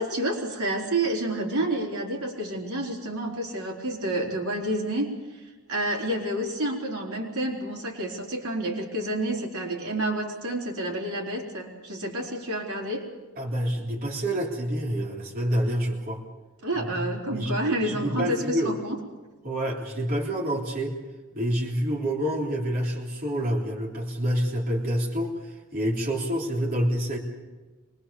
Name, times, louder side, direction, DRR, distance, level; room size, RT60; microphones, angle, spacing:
voice 1, 0.0-13.1 16.6-19.0, right 1 dB, 80° right, 0 dB, 4.0 m, -29 dB
voice 2, 13.4-16.2 16.7-17.6 17.8-18.7 19.4-21.0 21.4-27.2, equal, 40° right, -2 dB, 3.4 m, -28 dB
24.5 x 21.5 x 7.0 m, 1.2 s
head